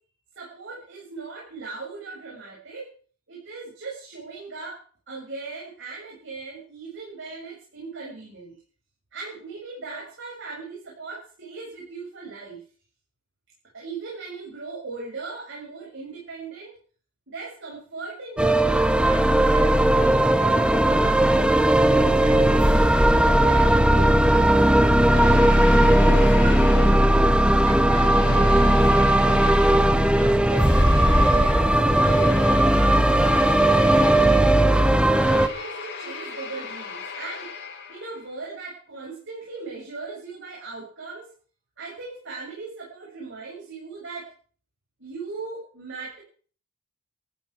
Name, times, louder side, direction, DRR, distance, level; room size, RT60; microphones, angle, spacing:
voice 1, 0.4-2.9 3.3-8.6 9.1-12.6 13.7-16.7 17.3-22.5 23.2-25.4 25.8-27.0 27.6-29.6 30.1-30.7 31.3-33.1 33.9-37.5 37.9-41.3 41.8-44.3 45.0-46.2, right 4 dB, 60° right, -4 dB, 7.4 m, -38 dB
sound 1, 18.4-35.5, right 1 dB, 5° right, 1.1 m, -18 dB
sound 2, 25.1-27.5 27.9-38.3, left 5 dB, 55° left, 5.5 m, -38 dB
16.5 x 14.5 x 5.1 m, 0.43 s
head